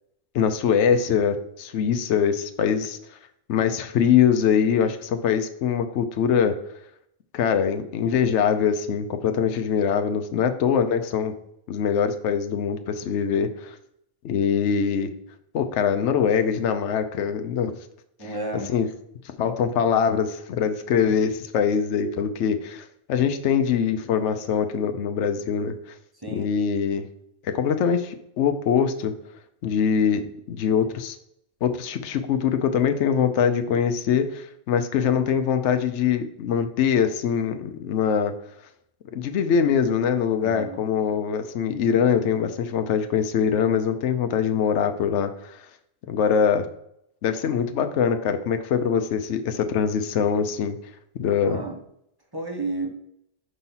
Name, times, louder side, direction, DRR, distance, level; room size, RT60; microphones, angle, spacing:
voice 1, 0.3-3.0 3.5-6.6 7.3-11.3 11.7-13.8 14.2-15.1 15.5-17.8 18.2-18.3 18.7-18.9 19.4-25.7 26.3-27.1 27.4-29.1 29.6-31.2 31.6-38.3 39.1-45.6 46.1-46.7 47.2-50.8 51.2-51.6, left 7 dB, 75° left, 7 dB, 0.9 m, -23 dB
voice 2, 18.2-18.7 26.2-26.5 40.4-40.8 51.4-51.8 52.3-52.9, right 2 dB, 20° right, 1 dB, 1.1 m, -31 dB
5.5 x 4.1 x 5.6 m, 0.74 s
omnidirectional pair, 1.2 m